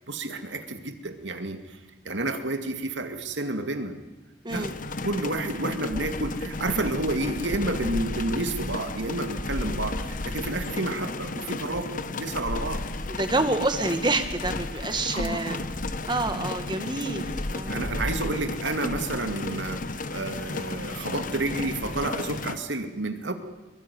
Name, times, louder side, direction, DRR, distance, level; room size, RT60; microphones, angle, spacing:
voice 1, 0.1-1.8 2.0-4.0 4.5-4.7 5.0-12.8 15.1-15.7 16.3-16.5 17.7-23.3, right 2 dB, 85° right, 7 dB, 2.4 m, -30 dB
sound 1, 4.5-22.5, left 2 dB, 45° left, 1.1 m, -33 dB
voice 2, 13.1-15.6 16.1-17.8, right 2 dB, 25° right, 8 dB, 1.9 m, -28 dB
22.5 x 21.5 x 9.7 m, 1.2 s
head